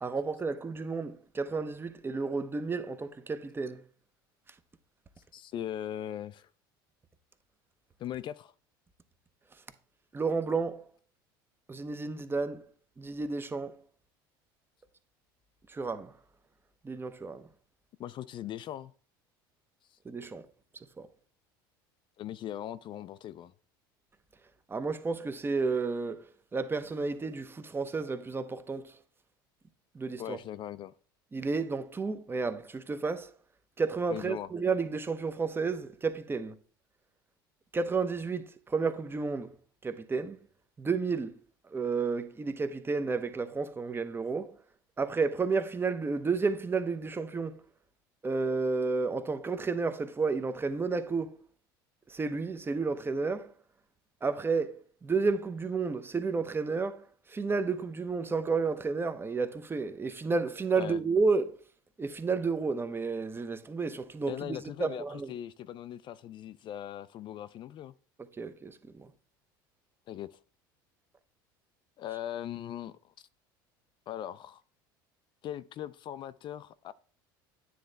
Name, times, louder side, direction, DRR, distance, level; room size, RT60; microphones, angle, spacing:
voice 1, 0.0-3.8 10.1-10.9 11.7-12.6 13.0-13.8 15.7-16.1 16.8-17.5 20.0-20.5 21.0-21.1 24.7-26.3 26.5-29.0 29.9-30.4 31.3-33.3 33.8-36.6 37.7-39.5 39.8-40.4 40.8-41.3 41.7-44.6 45.0-47.6 48.2-51.4 52.1-53.5 54.2-61.6 62.0-65.3 68.2-69.1, right 4 dB, 20° right, 0.7 m, -31 dB
voice 2, 5.3-6.5 8.0-8.5 18.0-18.9 19.9-20.0 22.2-23.5 30.2-30.9 34.1-34.5 60.8-61.0 64.3-67.9 70.1-70.4 72.0-73.3 74.1-74.6 75.4-76.9, left 11 dB, 45° left, 0.4 m, -40 dB
9.3 x 3.2 x 3.9 m
hypercardioid pair, 85°, 12 cm